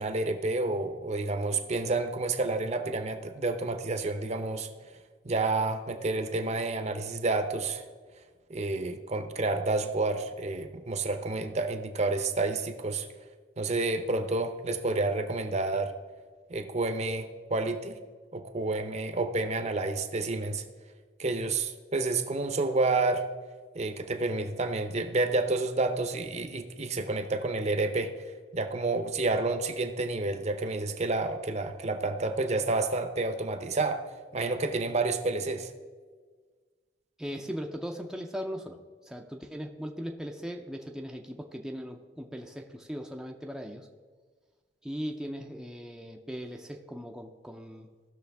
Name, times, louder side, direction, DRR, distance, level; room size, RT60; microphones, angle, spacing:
voice 1, 0.0-4.7 5.2-7.8 8.5-13.1 13.6-15.9 16.5-18.0 18.3-20.6 21.2-23.3 23.7-28.1 28.5-34.0 34.3-35.7, right 3 dB, 40° right, 7 dB, 0.8 m, -29 dB
voice 2, 37.2-38.8 39.1-43.9 44.8-47.9, equal, 5° right, 1 dB, 0.6 m, -38 dB
17.0 x 6.4 x 3.5 m, 1.5 s
head